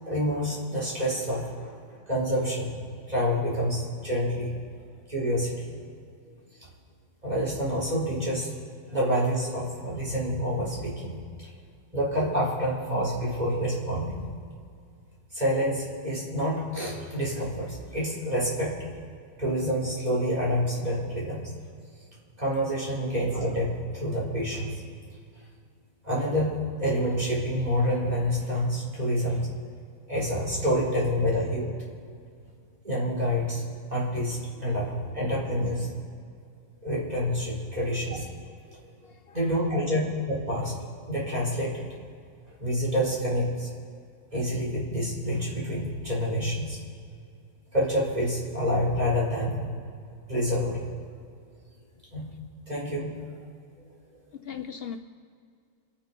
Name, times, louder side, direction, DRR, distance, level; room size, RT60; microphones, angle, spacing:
voice 1, 0.0-2.8 3.1-4.5 5.1-5.7 7.2-8.5 8.9-11.5 11.9-14.2 15.3-18.8 19.4-21.5 22.4-24.8 26.0-29.5 30.1-31.7 32.8-33.6 33.9-35.9 36.8-38.2 38.7-38.8 39.3-40.8 41.1-41.9 42.5-43.7 44.3-46.8 47.7-49.7 50.3-51.0 52.1-52.3 52.7-53.2, equal, 20° right, 4.5 m, -28 dB
voice 2, 39.0-39.5 54.3-55.0, left 8 dB, 85° left, 0.5 m, -39 dB
28.5 x 9.9 x 4.5 m
omnidirectional pair, 1.9 m